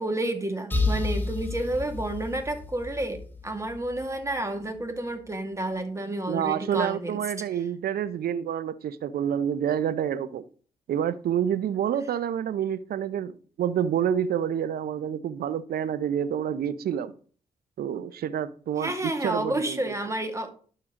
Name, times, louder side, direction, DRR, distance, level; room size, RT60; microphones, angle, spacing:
voice 1, 0.0-3.2 3.4-7.2 18.8-20.5, right 1 dB, 20° right, 2.3 m, -30 dB
sound 1, 0.7-4.4, left 3 dB, 10° left, 2.2 m, -31 dB
voice 2, 6.3-10.4 10.9-17.1 17.8-19.9, right 9 dB, 70° right, 0.7 m, -28 dB
12.0 x 4.8 x 3.8 m
hypercardioid pair, 45°, 16 cm